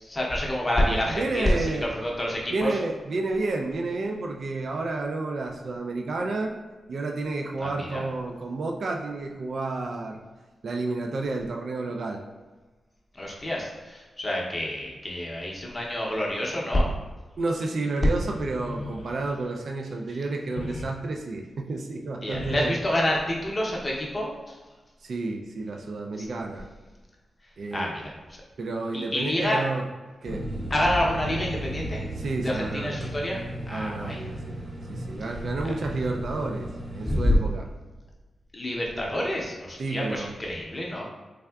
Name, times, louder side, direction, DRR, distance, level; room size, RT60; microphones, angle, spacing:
voice 1, 0.0-2.8 7.6-8.0 13.1-16.9 20.1-20.2 22.2-24.6 26.2-26.3 27.4-28.4 28.9-29.6 30.7-32.0 32.4-33.4 33.7-34.2 35.6-35.7 37.0-37.4 38.5-41.0, left 1 dB, 20° left, -2 dB, 0.6 m, -28 dB
voice 2, 1.1-1.9 2.5-6.5 6.9-10.2 10.6-12.2 17.4-22.7 25.0-26.7 27.6-27.9 28.6-29.8 30.2-30.5 32.2-33.1 33.7-34.6 34.9-37.6 39.8-40.3, right 3 dB, 60° right, 2 dB, 0.3 m, -30 dB
sound 1, 18.2-19.7 20.4-20.9 22.1-22.8, left 2 dB, 85° left, 0.5 m, -38 dB
sound 2, 30.3-37.2, equal, 25° right, 0.7 m, -35 dB
3.5 x 3.3 x 2.3 m, 1.2 s
wide cardioid pair, 135°, 0 cm